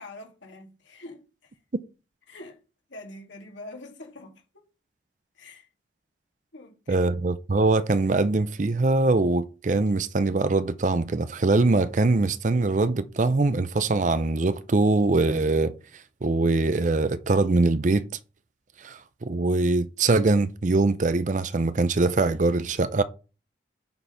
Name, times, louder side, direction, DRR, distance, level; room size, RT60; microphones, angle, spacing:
voice 1, 0.0-1.6 2.3-2.6 2.9-4.6 5.3-5.7 6.5-7.1, left 2 dB, 75° left, 2.4 m, -45 dB
voice 2, 6.9-18.1 18.8-23.0, right 3 dB, 40° right, 0.5 m, -23 dB
9.2 x 4.5 x 5.6 m
head